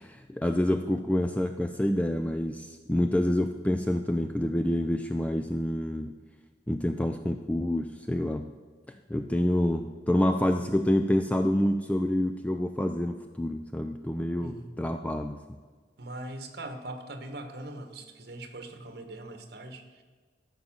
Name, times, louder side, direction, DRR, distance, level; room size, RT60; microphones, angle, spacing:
voice 1, 0.0-6.1 6.7-8.5 8.9-15.6, left 1 dB, 10° left, 7 dB, 0.3 m, -27 dB
voice 2, 14.4-14.7 16.0-20.0, right 1 dB, 60° right, 7 dB, 1.2 m, -41 dB
13.0 x 5.4 x 7.4 m, 1.5 s
head